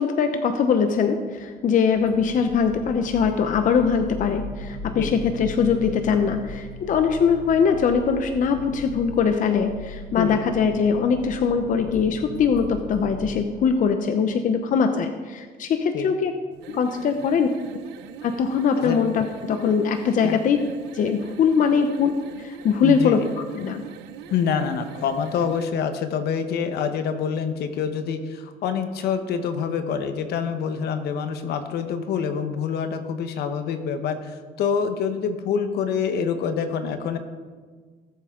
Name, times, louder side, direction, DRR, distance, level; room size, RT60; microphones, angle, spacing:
voice 1, 0.0-16.3 16.7-17.5 18.2-20.6 20.9-23.2 23.5-23.8, left 6 dB, 50° left, 7 dB, 0.8 m, -22 dB
sound 1, 1.9-13.2, left 2 dB, 5° left, 3.3 m, -38 dB
sound 2, 16.5-25.7, right 9 dB, 85° right, 0.7 m, -42 dB
voice 2, 22.8-23.3 24.3-37.2, left 6 dB, 75° left, 8 dB, 1.2 m, -26 dB
19.5 x 7.8 x 3.8 m, 1.5 s
cardioid pair, 110°, 17 cm